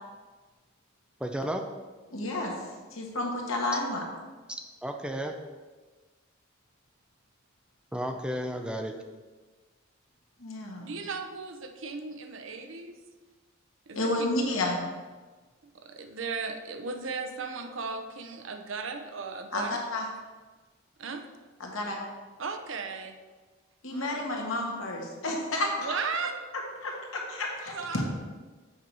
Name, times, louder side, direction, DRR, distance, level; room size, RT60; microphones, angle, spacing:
voice 1, 1.2-1.6 4.8-5.3 7.9-9.0, equal, 5° right, 4 dB, 0.5 m, -32 dB
voice 2, 2.1-2.5 2.9-4.0 10.4-10.9 13.9-14.9 19.5-20.0 21.6-22.0 23.8-25.7 26.8-28.0, left 2 dB, 90° left, 0 dB, 1.7 m, -31 dB
voice 3, 10.8-13.0 13.9-14.3 15.6-19.8 21.0-21.2 22.4-23.2 23.9-24.2 25.8-26.4 27.7-28.0, right 4 dB, 70° right, 6 dB, 0.8 m, -36 dB
7.5 x 4.7 x 5.3 m, 1.3 s
head